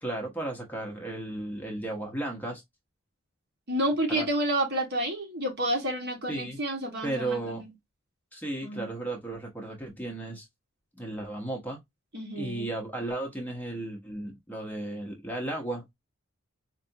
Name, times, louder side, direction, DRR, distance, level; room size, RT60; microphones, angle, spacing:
voice 1, 0.0-2.6 4.1-4.3 6.3-6.6 7.0-7.6 8.3-10.5 11.0-11.8 12.4-15.8, right 2 dB, 10° left, 0.7 m, -34 dB
voice 2, 3.7-7.7 8.6-8.9 12.1-12.7, right 1 dB, 45° right, 1.2 m, -30 dB
4.4 x 2.4 x 2.6 m
head